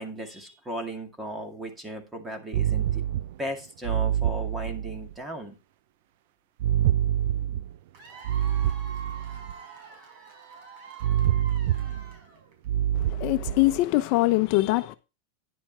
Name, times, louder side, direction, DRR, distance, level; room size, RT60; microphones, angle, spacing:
voice 1, 0.0-3.0 3.4-5.6, equal, 10° right, 2.1 m, -36 dB
sound 1, 2.5-3.4 3.8-5.1 6.6-7.8 8.3-9.5 11.0-12.2 12.7-13.8, right 11 dB, 65° right, 0.4 m, -26 dB
Cheering / Applause / Crowd, 7.9-12.7, right 5 dB, 50° right, 4.9 m, -45 dB
voice 2, 12.9-14.9, left 19 dB, 50° left, 0.7 m, -23 dB
10.0 x 7.1 x 4.4 m
supercardioid pair, 145°, 0 cm